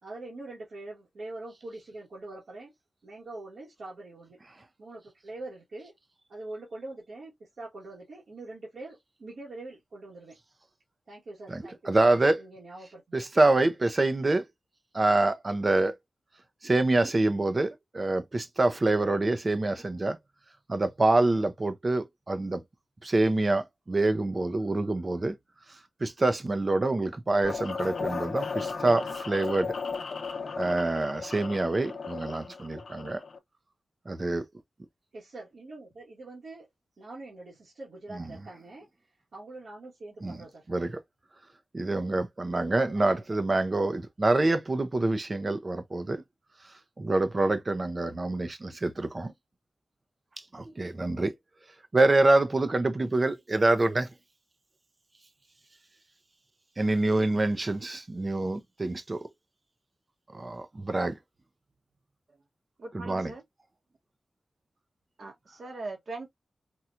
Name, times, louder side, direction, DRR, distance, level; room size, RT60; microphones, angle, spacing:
voice 1, 0.0-2.7 3.0-4.4 4.8-5.9 6.3-10.4 11.1-11.9 12.4-13.2 35.1-36.7 37.0-38.9 39.3-40.7 42.7-43.2, right 2 dB, 80° right, 1.3 m, -44 dB
voice 2, 11.9-12.4 13.1-14.5 14.9-16.0 16.6-20.2 20.7-22.6 23.0-25.4 26.0-29.7 30.6-33.2 34.1-34.5 38.1-38.3 40.2-40.4 40.7-41.0 41.7-46.2 47.0-49.3 50.5-51.3 51.9-54.1 56.8-59.3 60.3-61.2 62.9-63.3, right 2 dB, 30° right, 0.5 m, -26 dB
sound 1, 27.4-33.4, left 5 dB, 70° left, 0.7 m, -35 dB
voice 3, 62.8-63.4 65.2-66.3, right 3 dB, 60° right, 1.0 m, -40 dB
4.3 x 2.3 x 2.4 m
wide cardioid pair, 145°, 0 cm